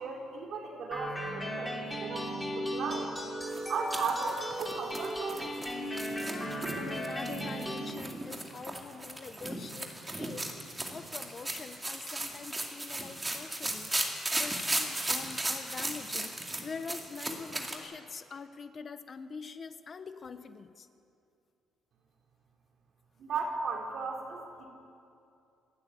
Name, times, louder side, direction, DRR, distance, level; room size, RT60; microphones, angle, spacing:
voice 1, 0.0-3.1 3.7-5.5 23.2-24.6, right 4 dB, 50° right, 0 dB, 4.1 m, -36 dB
sound 1, 0.9-7.9, equal, 5° left, 3.1 m, -36 dB
sound 2, 3.5-17.8, right 2 dB, 10° right, 2.3 m, -36 dB
voice 2, 6.2-16.4 16.6-20.9, left 5 dB, 30° left, 10 dB, 0.8 m, -44 dB
26.5 x 12.5 x 9.9 m, 2.6 s
cardioid pair, 155°, 0 cm